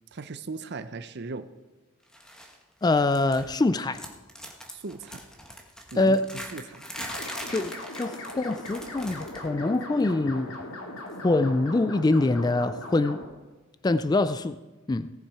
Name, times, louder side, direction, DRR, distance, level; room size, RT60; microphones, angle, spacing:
voice 1, 0.1-1.5 4.7-5.2 5.9-6.2 6.5-6.8, right 3 dB, 50° right, 12 dB, 0.7 m, -37 dB
sound 1, 2.1-2.6 2.8-3.6 3.9-9.5 9.7-10.0 11.1-11.2, equal, 5° left, 1.3 m, -41 dB
voice 2, 2.8-4.0 6.0-6.2 7.5-10.6 11.2-13.2 13.8-14.6 14.9-15.1, left 2 dB, 20° left, 13 dB, 0.3 m, -24 dB
sound 2, 7.0-13.2, left 2 dB, 80° left, 2.4 m, -39 dB
17.5 x 7.3 x 4.8 m, 1.2 s
head